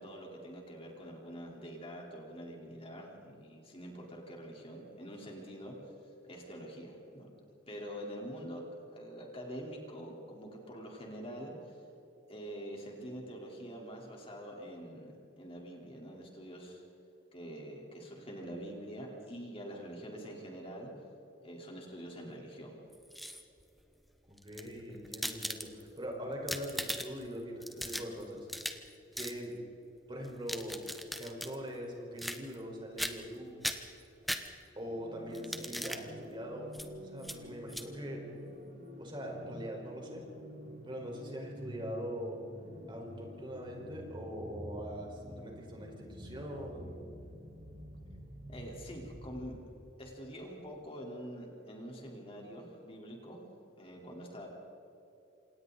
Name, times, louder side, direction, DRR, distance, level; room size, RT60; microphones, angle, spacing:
voice 1, 0.0-5.7 6.2-7.3 7.7-8.6 8.9-11.8 12.3-16.8 17.3-20.9 21.4-22.7 48.5-49.5 50.0-53.4 53.8-54.5, equal, 30° left, -1 dB, 4.1 m, -45 dB
sound 1, 22.9-23.6 24.4-26.0 26.3-27.3 27.6-28.9 29.2-29.4 30.2-31.6 32.2-32.7 33.0-33.4 33.6-34.9 35.3-36.0 36.7-36.9 37.2-37.4 37.7-37.9, equal, ahead, 1.2 m, -39 dB
voice 2, 24.3-28.5 29.1-29.5 30.1-30.8 31.2-33.6 34.8-36.7 37.1-38.2 39.0-40.3 40.8-42.4 42.9-47.0, equal, 25° right, 0 dB, 4.9 m, -42 dB
sound 2, 34.8-49.8, equal, 70° right, 5.0 m, -48 dB
28.0 x 27.5 x 4.1 m, 2.9 s
head